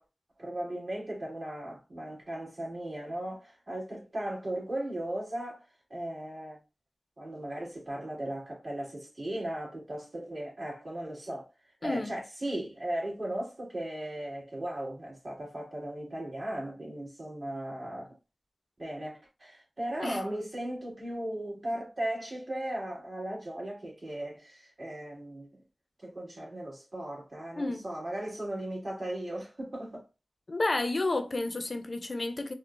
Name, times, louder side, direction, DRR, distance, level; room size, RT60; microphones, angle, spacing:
voice 1, 0.4-5.6 5.9-6.6 7.2-11.5 11.8-18.2 18.8-25.6 26.0-30.0, right 1 dB, 50° right, 1.6 m, -37 dB
voice 2, 11.8-12.1 20.0-20.2 27.6-27.8 30.5-32.5, left 2 dB, 50° left, 0.4 m, -31 dB
3.7 x 2.0 x 2.4 m
wide cardioid pair, 60°, 0 cm